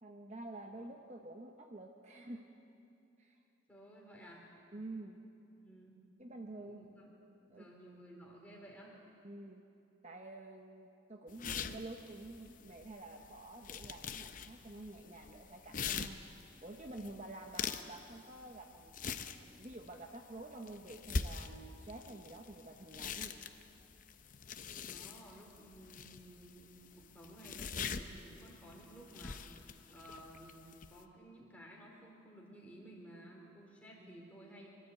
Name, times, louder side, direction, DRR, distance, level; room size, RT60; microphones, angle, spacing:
voice 1, 0.0-2.4 3.2-3.4 4.7-5.2 6.2-6.8 7.5-7.7 9.2-9.6 10.0-19.0 19.4-23.4 34.0-34.3, right 2 dB, 35° right, 3 dB, 0.9 m, -49 dB
voice 2, 3.7-4.5 5.6-6.1 6.6-7.0 7.5-9.0 24.7-34.7, right 1 dB, 5° left, -3 dB, 3.6 m, -55 dB
sound 1, 11.3-31.0, left 5 dB, 40° left, 0.7 m, -45 dB
24.5 x 13.0 x 8.3 m, 2.7 s
head